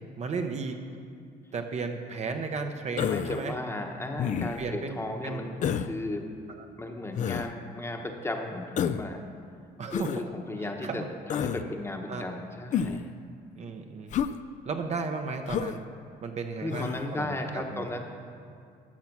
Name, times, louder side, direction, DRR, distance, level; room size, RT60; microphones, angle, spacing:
voice 1, 0.2-0.8 1.5-3.6 4.6-5.4 6.5-6.7 9.8-10.3 10.6-11.1 12.1-12.4 13.6-14.1 14.6-15.8 16.2-17.9, right 4 dB, 40° right, 5 dB, 0.8 m, -34 dB
Human voice, 3.0-3.5 4.2-4.7 5.6-5.9 7.2-7.5 8.8-9.1 9.9-10.2 11.3-11.6 12.7-13.1 14.1-14.4 15.5-15.8 16.7-17.0, left 8 dB, 45° left, 0.4 m, -29 dB
voice 2, 3.1-6.2 6.8-9.2 9.9-13.1 16.6-18.0, left 2 dB, 15° left, 3 dB, 1.0 m, -35 dB
13.5 x 5.9 x 6.0 m, 2.3 s
cardioid pair, 110°, 17 cm